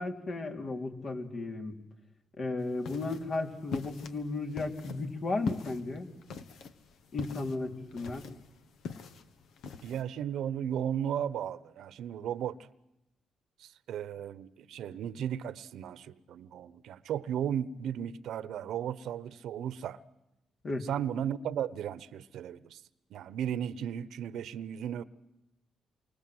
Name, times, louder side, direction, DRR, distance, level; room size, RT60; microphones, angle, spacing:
voice 1, 0.0-1.8 2.4-6.1 7.1-8.2 20.6-20.8, left 3 dB, 55° left, 4.1 m, -34 dB
sound 1, 2.6-10.0, left 5 dB, 80° left, 1.6 m, -42 dB
voice 2, 9.8-12.6 13.6-20.0 20.8-22.8 23.1-25.0, right 9 dB, 80° right, 1.1 m, -35 dB
28.5 x 24.5 x 8.0 m
supercardioid pair, 65°, 0 cm